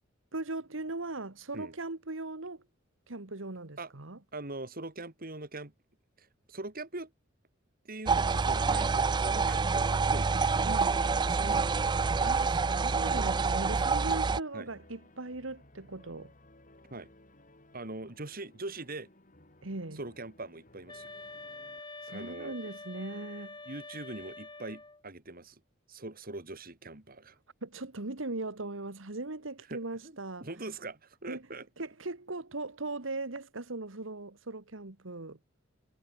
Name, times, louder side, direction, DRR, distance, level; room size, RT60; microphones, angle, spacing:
voice 1, 0.3-2.6 3.1-4.2 10.6-11.0 12.2-16.3 19.6-20.0 22.0-23.6 27.6-30.5 31.3-31.4 31.8-35.4, right 2 dB, 85° right, 1.8 m, -39 dB
voice 2, 4.3-5.7 6.2-7.1 7.8-11.9 14.5-14.7 16.9-17.1 17.7-19.1 19.9-21.1 22.1-22.6 23.6-25.6 25.9-27.4 29.7-31.7, right 2 dB, 50° right, 3.3 m, -42 dB
sound 1, 8.1-14.4, right 4 dB, 25° right, 0.4 m, -27 dB
sound 2, 11.8-21.8, left 1 dB, 45° left, 7.4 m, -59 dB
sound 3, 20.9-25.0, left 3 dB, 25° left, 6.4 m, -46 dB
head